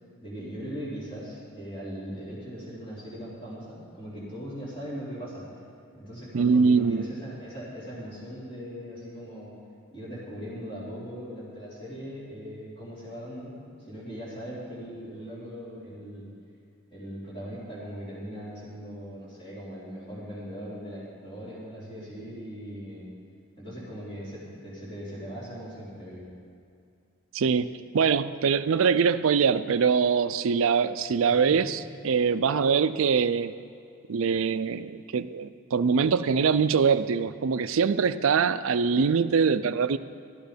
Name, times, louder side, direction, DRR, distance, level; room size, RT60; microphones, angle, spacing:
voice 1, 0.2-5.4 5.9-9.5 9.9-13.5 13.8-16.3 16.9-23.1 23.6-26.3 31.3-31.6, equal, 25° left, -9 dB, 3.5 m, -39 dB
voice 2, 6.3-7.1 27.3-27.7 27.9-31.8 32.0-33.5 34.1-40.0, right 6 dB, 65° right, 13 dB, 0.4 m, -23 dB
13.0 x 10.5 x 5.1 m, 2.4 s
head